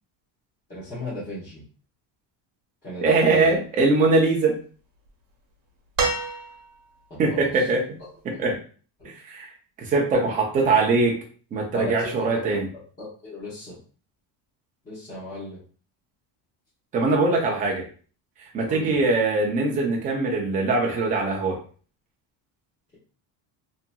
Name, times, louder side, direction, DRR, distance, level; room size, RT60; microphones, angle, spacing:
voice 1, 0.7-1.6 2.8-3.5 7.1-7.7 9.0-9.1 11.7-12.6 13.0-13.8 14.8-15.6 18.7-19.0, left 1 dB, 20° left, -12 dB, 1.0 m, -36 dB
voice 2, 3.0-4.6 7.2-7.8 8.4-8.6 9.0-9.5 9.8-11.2 11.5-12.7 16.9-17.8 18.5-21.6, right 3 dB, 20° right, -1 dB, 0.4 m, -22 dB
sound 1, 6.0-7.0 8.5-8.6, right 4 dB, 75° right, 0.9 m, -27 dB
2.8 x 2.5 x 2.2 m, 0.39 s
cardioid pair, 165°, 45 cm